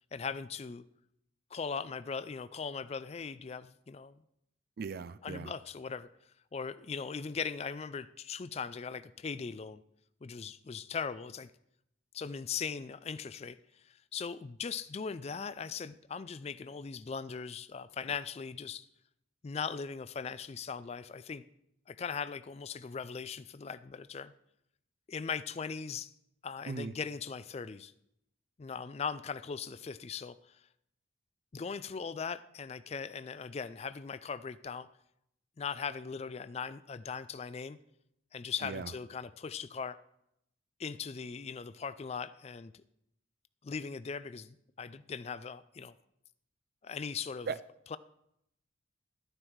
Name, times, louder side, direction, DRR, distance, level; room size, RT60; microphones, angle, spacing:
voice 1, 0.1-0.8 1.5-4.2 5.2-6.1 6.5-9.8 10.2-11.5 12.1-18.9 19.4-21.4 21.9-24.3 25.1-26.1 26.4-27.9 28.6-30.6 31.5-34.9 35.6-37.8 38.3-40.0 40.8-42.7 43.6-45.9 46.8-47.5 47.9-48.0, left 6 dB, 30° left, 14 dB, 0.3 m, -39 dB
voice 2, 4.8-5.5 26.7-26.9 38.6-38.9 47.5-47.6, right 5 dB, 50° right, 14 dB, 0.4 m, -38 dB
13.5 x 9.8 x 4.6 m, 0.78 s
head